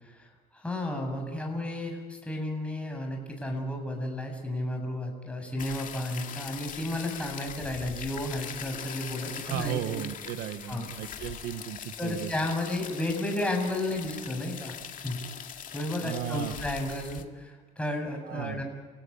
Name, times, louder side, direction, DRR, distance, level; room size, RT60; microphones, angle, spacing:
voice 1, 0.0-9.8 10.7-10.9 12.0-14.8 15.0-15.3 15.7-18.6, left 1 dB, 5° left, 2 dB, 7.4 m, -33 dB
sound 1, 5.6-17.2, left 8 dB, 50° left, 2.2 m, -41 dB
voice 2, 9.4-12.3 16.0-16.5 18.2-18.6, right 11 dB, 90° right, 9 dB, 1.2 m, -35 dB
29.0 x 17.0 x 9.6 m, 1.4 s
cardioid pair, 110°, 17 cm